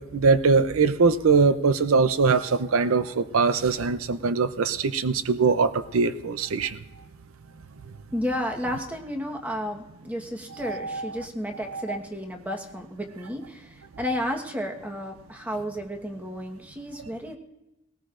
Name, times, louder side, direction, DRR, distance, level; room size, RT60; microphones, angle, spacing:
voice 1, 0.0-6.7 10.6-11.1 11.7-12.0, right 4 dB, 75° right, 11 dB, 0.6 m, -22 dB
voice 2, 8.1-17.4, equal, 10° right, 2 dB, 1.3 m, -32 dB
19.5 x 18.5 x 2.5 m, 0.95 s
head